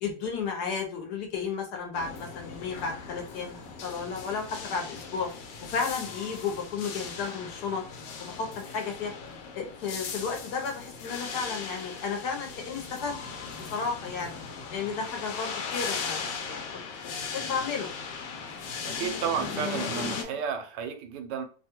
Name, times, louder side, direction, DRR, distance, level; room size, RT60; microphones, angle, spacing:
voice 1, 0.0-5.3 5.6-7.8 8.2-9.1 9.5-13.1 13.7-14.4 14.7-17.9 20.1-20.4, left 5 dB, 70° left, 3 dB, 1.2 m, -33 dB
sound 1, 1.9-20.2, left 5 dB, 90° left, 1.3 m, -38 dB
voice 2, 18.8-21.4, right 7 dB, 85° right, 7 dB, 1.2 m, -32 dB
3.0 x 2.3 x 2.9 m, 0.39 s
omnidirectional pair, 1.8 m